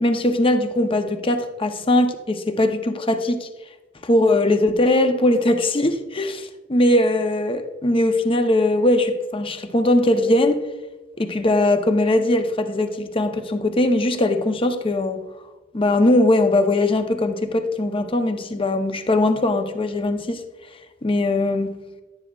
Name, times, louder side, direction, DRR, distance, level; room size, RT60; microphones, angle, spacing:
voice 1, 0.0-3.5 4.0-10.6 11.2-15.2 15.7-20.4 21.0-21.8, left 1 dB, 25° left, 0.6 m, -20 dB
11.0 x 9.6 x 2.3 m
head